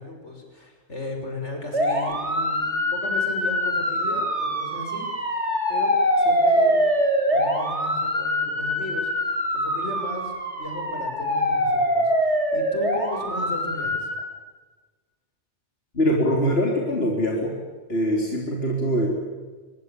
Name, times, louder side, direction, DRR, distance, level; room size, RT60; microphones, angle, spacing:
voice 1, 0.0-5.1 5.7-6.7 7.3-14.1, left 2 dB, 80° left, 3 dB, 6.5 m, -36 dB
sound 1, 1.7-14.2, equal, 80° right, 5.3 m, -24 dB
voice 2, 15.9-17.5 17.9-19.1, equal, 60° left, -1 dB, 4.4 m, -23 dB
24.5 x 23.5 x 8.6 m, 1.4 s
omnidirectional pair, 1.2 m